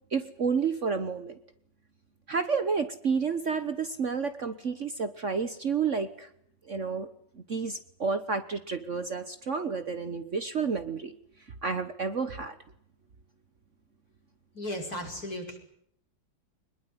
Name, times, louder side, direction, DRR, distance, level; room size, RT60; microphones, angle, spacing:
voice 1, 0.1-1.4 2.3-6.3 6.7-7.1 7.3-11.1 11.6-12.6, right 5 dB, 45° right, 11 dB, 1.4 m, -30 dB
voice 2, 14.5-15.6, left 1 dB, 50° left, 3 dB, 6.2 m, -35 dB
24.0 x 21.0 x 9.7 m, 0.71 s
omnidirectional pair, 2.0 m